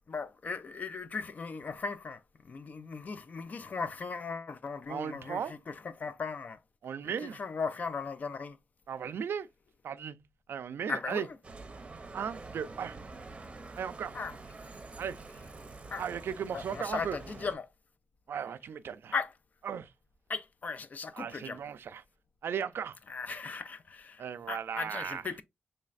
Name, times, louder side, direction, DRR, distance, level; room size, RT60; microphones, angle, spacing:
voice 1, 0.1-6.6 7.0-8.6 10.9-11.3 14.1-14.4 15.9-16.1 16.5-17.7 19.1-19.3 20.3-21.6 23.1-25.4, left 5 dB, 45° left, 0.3 m, -37 dB
voice 2, 4.9-5.5 6.8-7.4 8.9-9.5 9.8-10.2 10.5-11.3 12.1-13.0 13.8-14.2 15.0-15.2 16.0-17.2 18.3-19.1 19.6-19.9 21.1-22.0 22.4-23.0 24.2-25.2, right 7 dB, 85° right, 0.3 m, -36 dB
Bicycle, 11.4-17.5, right 3 dB, 30° right, 0.6 m, -47 dB
4.1 x 3.2 x 2.3 m
wide cardioid pair, 150°, 4 cm